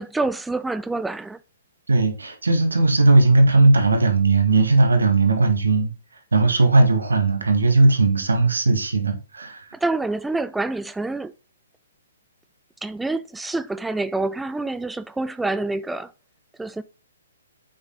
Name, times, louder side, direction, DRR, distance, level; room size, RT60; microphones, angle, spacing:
voice 1, 0.0-1.4 9.8-11.3 12.8-16.1 16.6-16.8, right 2 dB, 5° right, 0.4 m, -27 dB
voice 2, 1.9-5.9 6.3-9.7, right 3 dB, 80° right, 2.2 m, -17 dB
8.0 x 6.3 x 3.9 m
figure-of-eight pair, 125°, 0 cm